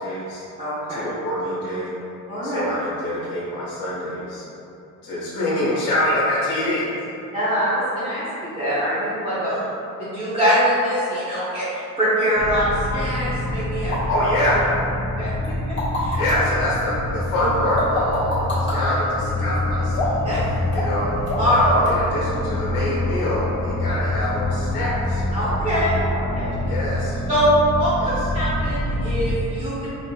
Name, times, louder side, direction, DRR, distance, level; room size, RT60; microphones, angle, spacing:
voice 1, 0.0-0.4 0.9-1.9 2.4-4.4 5.0-6.9 9.5-9.6 14.1-14.7 16.2-25.5 26.6-27.2 28.0-28.3, left 1 dB, 90° left, -7 dB, 0.7 m, -25 dB
voice 2, 0.6-1.0 2.3-2.6 7.3-9.5 10.0-13.9 15.2-15.3 16.0-16.2 20.2-20.4 21.4-21.6 25.3-26.5 27.3-29.9, equal, 15° right, -14 dB, 1.0 m, -23 dB
sound 1, 12.4-29.3, left 1 dB, 50° left, 0.7 m, -26 dB
sound 2, 13.9-14.0 14.5-14.6 15.4-16.5 17.8-18.8 19.9-20.3 20.7-21.0 21.3-21.6 21.9-22.0, left 2 dB, 35° left, 1.4 m, -26 dB
4.3 x 2.8 x 2.3 m, 2.8 s
cardioid pair, 105°, 34 cm